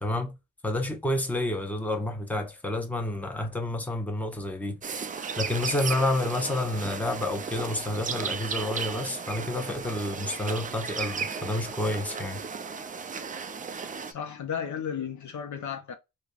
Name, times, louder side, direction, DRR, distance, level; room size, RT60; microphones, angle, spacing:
voice 1, 0.0-0.3 0.6-4.8 5.3-12.4, left 1 dB, 5° left, 0.7 m, -29 dB
sound 1, 4.8-14.1, right 6 dB, 25° right, 0.3 m, -35 dB
voice 2, 14.1-15.9, left 7 dB, 50° left, 0.6 m, -34 dB
3.2 x 2.0 x 2.4 m
supercardioid pair, 55°, 38 cm